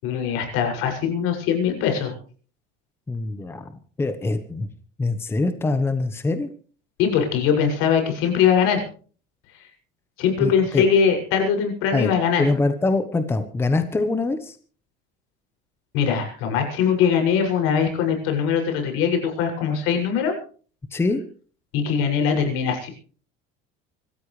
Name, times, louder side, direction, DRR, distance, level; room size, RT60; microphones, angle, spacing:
voice 1, 0.0-2.1 7.0-8.8 10.2-12.5 15.9-20.3 21.7-22.9, left 7 dB, 85° left, 4 dB, 6.7 m, -21 dB
voice 2, 3.1-3.7 4.0-4.7 5.0-6.5 10.4-10.8 11.9-12.1 12.4-14.6 20.9-21.2, left 3 dB, 10° left, 9 dB, 1.1 m, -24 dB
26.0 x 14.0 x 3.3 m, 0.41 s
cardioid pair, 170°, 21 cm